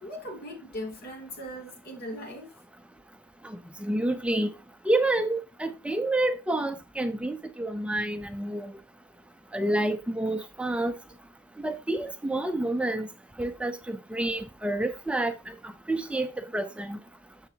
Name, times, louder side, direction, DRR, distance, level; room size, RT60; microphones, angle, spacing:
voice 1, 0.0-2.5, equal, 55° left, 2.8 m, -39 dB
voice 2, 3.4-4.5 4.9-8.7 9.5-10.9 11.6-13.1 13.4-17.0, right 1 dB, 5° right, 0.5 m, -29 dB
9.3 x 7.1 x 2.8 m
head